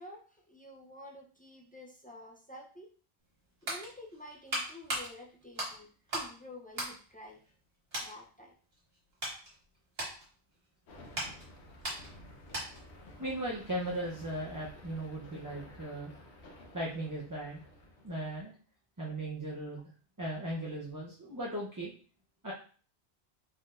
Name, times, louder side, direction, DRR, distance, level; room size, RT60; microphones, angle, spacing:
voice 1, 0.0-2.9 3.6-7.4 8.0-8.5, left 1 dB, 10° left, 0 dB, 0.4 m, -50 dB
sound 1, 3.2-6.4 6.7-7.6 7.9-8.2 8.7-12.9 13.2-13.4, right 1 dB, 60° right, 1.8 m, -39 dB
sound 2, 10.9-18.4, left 1 dB, 85° left, 1.2 m, -53 dB
voice 2, 13.2-16.1 16.7-17.6 18.0-18.5 19.0-19.8 20.2-21.9 22.4-22.5, right 1 dB, 20° right, -5 dB, 0.7 m, -37 dB
4.4 x 3.9 x 2.5 m, 0.41 s
omnidirectional pair, 1.1 m